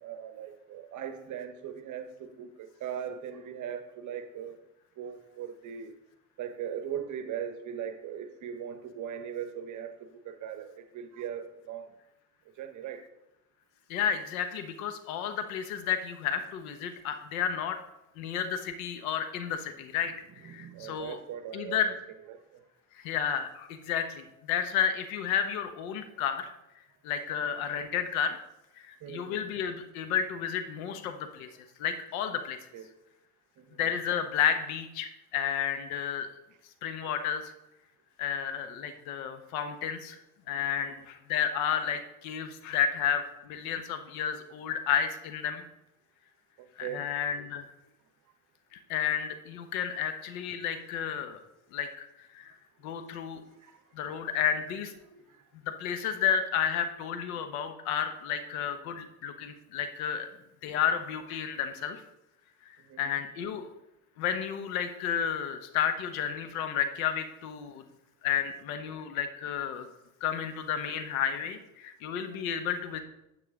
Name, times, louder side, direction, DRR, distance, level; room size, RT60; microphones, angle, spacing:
voice 1, 0.0-4.6 5.0-5.9 6.4-9.9 10.2-11.9 12.6-13.0 20.4-22.0 22.3-22.6 29.0-29.5 32.3-32.4 32.7-32.9 33.6-33.8 40.5-40.6 46.8-47.1 53.6-54.1 55.0-55.2 62.9-63.2, right 9 dB, 40° right, 9 dB, 1.0 m, -39 dB
voice 2, 13.9-17.8 18.2-20.1 20.4-21.2 21.5-21.9 23.0-26.5 27.0-28.4 28.8-31.5 31.8-32.6 33.8-36.3 36.8-37.5 38.2-40.2 40.5-45.6 46.8-47.7 48.7-51.4 51.7-52.1 52.3-52.5 52.8-53.4 53.9-54.9 55.5-60.3 60.6-62.0 62.6-62.7 63.0-63.7 64.2-67.8 68.2-69.9 70.2-73.0, left 8 dB, 70° left, 8 dB, 1.2 m, -31 dB
9.5 x 7.0 x 3.7 m, 0.89 s
hypercardioid pair, 75°, 44 cm